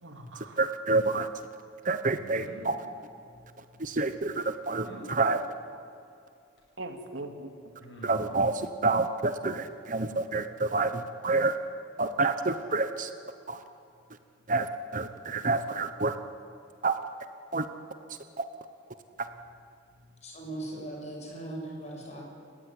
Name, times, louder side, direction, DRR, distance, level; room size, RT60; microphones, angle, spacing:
voice 1, 0.0-0.7 3.2-3.9 6.8-7.5, right 2 dB, 80° right, 4 dB, 2.9 m, -42 dB
voice 2, 0.6-1.3 1.8-2.7 3.8-5.4 8.0-11.5 12.0-13.1 13.5-13.6 14.5-14.7 14.9-16.1 16.8-17.0 17.5-17.7 19.2-19.3, right 3 dB, 45° right, 9 dB, 1.0 m, -28 dB
sound 1, 2.2-2.6 4.8-5.1 6.6-6.7 7.8-8.4, equal, 65° left, 7.7 m, -45 dB
voice 3, 20.2-22.3, right 1 dB, 35° left, -1 dB, 7.1 m, -39 dB
29.5 x 15.5 x 9.9 m, 2.4 s
head